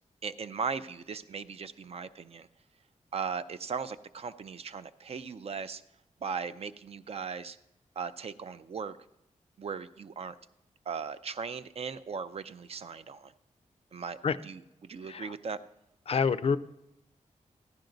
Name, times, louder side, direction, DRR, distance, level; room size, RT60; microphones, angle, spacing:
voice 1, 0.2-2.5 3.1-5.8 6.2-7.6 8.0-9.0 9.6-10.3 10.9-13.3 13.9-14.2 14.4-15.6, right 5 dB, 50° right, 12 dB, 0.5 m, -38 dB
voice 2, 16.1-16.6, left 5 dB, 50° left, 15 dB, 0.4 m, -27 dB
15.0 x 11.5 x 3.9 m, 0.85 s
wide cardioid pair, 155°, 13 cm